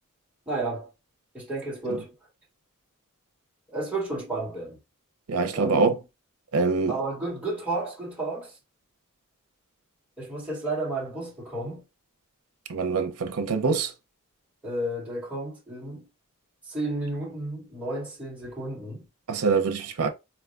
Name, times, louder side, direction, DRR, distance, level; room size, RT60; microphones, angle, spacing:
voice 1, 0.5-0.9 1.3-2.1 3.7-4.8 5.5-6.0 6.9-8.6 10.2-11.8 14.6-16.1 16.6-19.0, right 2 dB, 5° right, 1.0 m, -32 dB
voice 2, 5.3-6.0 6.5-7.0 12.7-13.9 19.3-20.1, right 4 dB, 85° right, 0.6 m, -24 dB
4.0 x 2.2 x 2.4 m
head